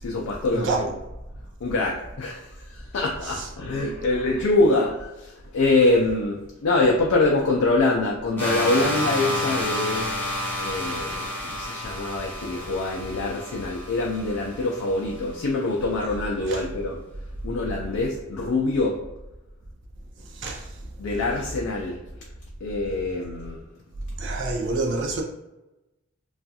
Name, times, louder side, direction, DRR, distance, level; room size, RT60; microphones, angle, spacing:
voice 1, 0.0-1.0 1.6-10.1 10.6-17.0 17.4-19.0 21.0-22.0 22.6-23.6, left 2 dB, 85° left, 0.4 m, -24 dB
voice 2, 0.5-0.9 3.3-3.4 16.5-16.6 20.3-20.7 24.2-25.2, right 3 dB, 55° right, 0.4 m, -27 dB
sound 1, 8.4-15.2, left 1 dB, 10° left, 0.6 m, -30 dB
2.4 x 2.3 x 2.7 m
head